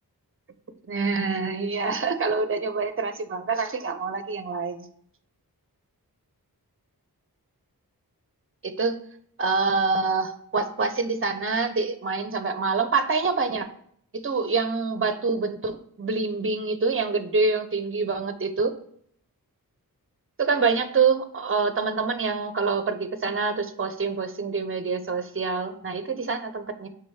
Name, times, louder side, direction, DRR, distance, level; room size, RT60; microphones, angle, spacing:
voice 1, 0.9-4.9 8.6-9.0 9.4-13.7 14.2-18.7 20.4-26.9, right 4 dB, 35° right, 9 dB, 0.7 m, -26 dB
6.0 x 3.7 x 4.8 m, 0.64 s
wide cardioid pair, 80°, 37 cm